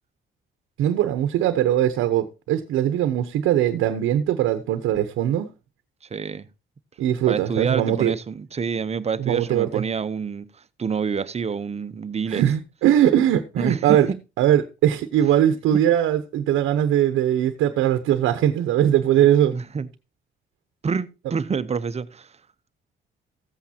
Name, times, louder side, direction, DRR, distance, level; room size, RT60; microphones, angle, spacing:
voice 1, 0.8-5.5 7.0-8.1 9.2-9.8 12.3-14.1 14.4-19.6, right 11 dB, 90° right, 0.9 m, -20 dB
voice 2, 6.0-6.5 7.2-12.4 13.6-14.2 19.5-19.9 20.8-22.4, right 6 dB, 30° right, 0.7 m, -27 dB
14.5 x 8.5 x 2.8 m
cardioid pair, 90°, 20 cm